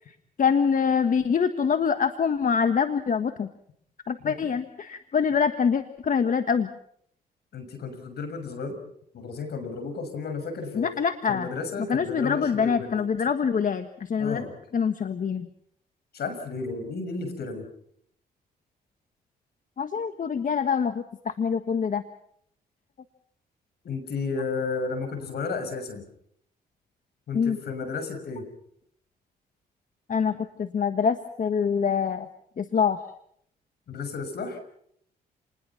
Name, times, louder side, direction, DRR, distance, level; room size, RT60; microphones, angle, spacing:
voice 1, 0.1-3.5 4.1-6.7 10.7-11.5 11.9-14.4 14.7-15.5 19.8-22.0 27.3-27.6 30.1-32.3 32.6-33.0, left 6 dB, 50° left, 9 dB, 1.5 m, -25 dB
voice 2, 7.5-8.8 9.1-10.9 11.3-13.0 14.2-14.5 16.1-17.7 23.8-26.0 27.3-28.5 33.9-34.6, left 4 dB, 70° left, 8 dB, 6.4 m, -33 dB
29.0 x 20.5 x 5.9 m, 0.69 s
cardioid pair, 80°, 17 cm